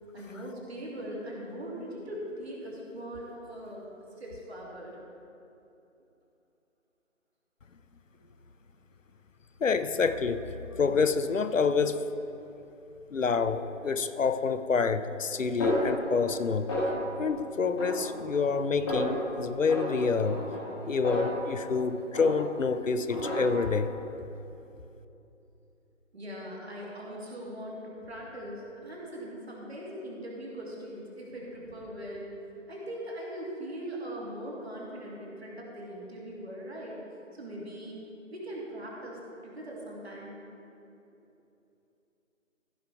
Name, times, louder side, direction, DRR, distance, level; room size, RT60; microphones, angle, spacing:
voice 1, 0.1-3.9 4.2-5.0 26.1-32.3 32.7-37.0 37.3-38.0 38.3-40.4, equal, 55° right, -4 dB, 2.6 m, -40 dB
voice 2, 9.6-12.0 13.1-16.7 17.2-20.5 20.8-23.9, left 5 dB, 70° left, 11 dB, 0.7 m, -27 dB
Snare drum, 15.6-16.4 16.7-17.3 17.8-18.6 18.9-19.3 19.7-21.8 22.1-22.7 23.1-23.8, left 1 dB, 5° left, 1.0 m, -32 dB
15.0 x 5.6 x 4.7 m, 2.8 s
figure-of-eight pair, 160°, 39 cm